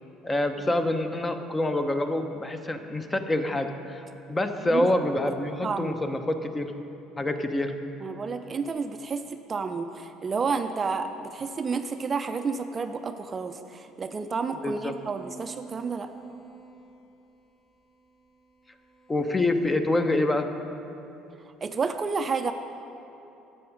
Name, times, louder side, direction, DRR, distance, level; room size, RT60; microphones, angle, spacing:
voice 1, 0.2-4.0 4.3-6.7 7.2-7.7 14.6-14.9 19.1-20.5, left 1 dB, 20° left, 7 dB, 0.8 m, -26 dB
voice 2, 5.6-6.0 8.0-9.2 9.5-16.1 21.6-22.5, right 5 dB, 30° right, 8 dB, 0.5 m, -30 dB
sound 1, 14.9-20.3, right 4 dB, 35° left, 1.5 m, -50 dB
12.0 x 7.7 x 5.3 m, 2.9 s
figure-of-eight pair, 55°, 0 cm